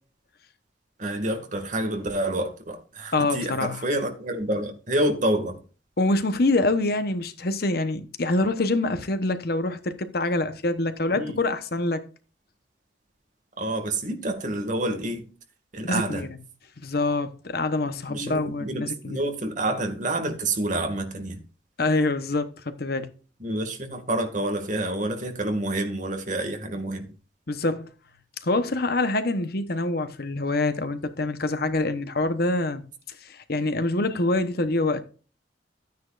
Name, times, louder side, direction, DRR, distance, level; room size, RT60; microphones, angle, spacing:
voice 1, 1.0-5.6 11.1-11.4 13.6-15.3 15.7-16.2 18.1-21.4 23.4-27.1, right 1 dB, 45° right, 2.0 m, -28 dB
voice 2, 3.1-3.8 6.0-12.0 15.8-16.4 16.8-19.2 21.8-23.1 27.5-27.9 28.4-32.8 33.2-35.0, left 2 dB, 55° left, 1.0 m, -25 dB
12.5 x 9.5 x 2.5 m
head